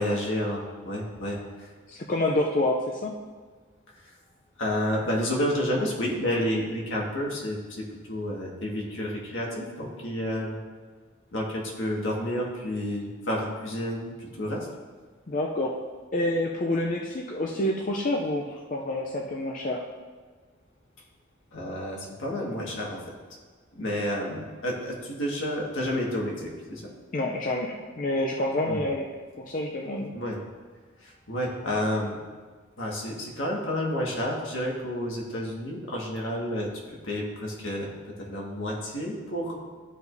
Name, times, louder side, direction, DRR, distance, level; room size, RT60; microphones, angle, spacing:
voice 1, 0.0-1.7 4.6-10.6 11.3-14.7 21.5-23.0 23.7-26.8 28.7-28.8 30.1-30.4 31.0-32.2 32.8-37.9 38.3-39.5, left 1 dB, 80° left, -2 dB, 1.7 m, -30 dB
voice 2, 1.9-3.2 15.3-15.7 16.1-19.8 27.1-29.1 29.4-30.1, left 1 dB, 40° left, -1 dB, 0.5 m, -28 dB
13.0 x 4.7 x 2.7 m, 1.5 s
head